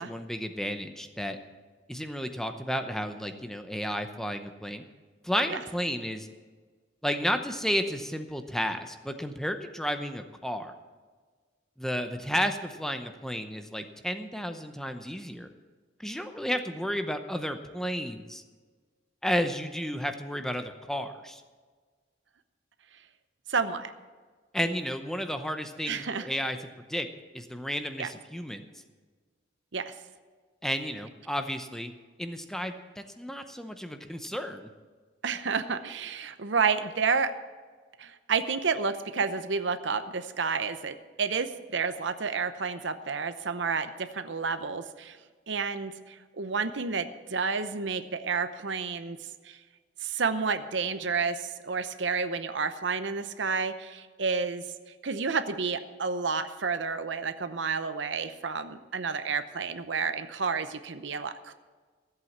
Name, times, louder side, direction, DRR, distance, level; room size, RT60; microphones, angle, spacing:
voice 1, 0.0-1.4 1.9-4.8 5.2-6.3 7.0-10.7 11.8-15.5 16.0-18.4 19.2-21.4 24.5-26.6 26.9-27.1 27.3-28.7 30.6-31.9 32.2-34.7, equal, 5° left, 7 dB, 0.7 m, -32 dB
voice 2, 23.5-23.9 25.9-26.3 28.0-28.1 29.7-29.9 35.2-37.3 38.0-45.2 45.5-49.2 49.4-49.6 50.0-54.6 55.0-61.5, right 5 dB, 75° right, 11 dB, 0.8 m, -30 dB
14.5 x 8.1 x 7.3 m, 1.5 s
head